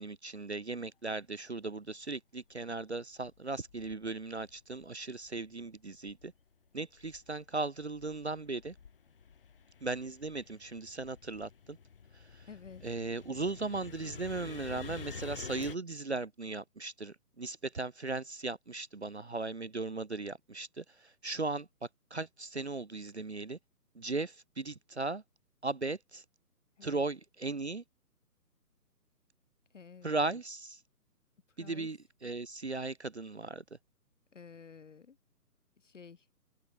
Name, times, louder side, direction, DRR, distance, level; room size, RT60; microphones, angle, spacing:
voice 1, 0.0-6.3 6.7-8.7 9.8-11.8 12.1-12.5 12.8-21.7 22.1-23.6 24.0-25.2 25.6-26.2 26.8-27.8 30.0-30.8 31.6-33.6, right 3 dB, 45° right, 0.5 m, -37 dB
sound 1, 2.5-2.6 3.2-4.9 5.2-6.5 6.9-15.8, left 6 dB, 35° left, 2.2 m, -49 dB
voice 2, 12.5-12.8 26.8-27.0 29.7-30.2 31.6-31.9 34.3-35.2 35.8-36.2, left 6 dB, 50° left, 0.8 m, -51 dB
open air
hypercardioid pair, 170°, 47 cm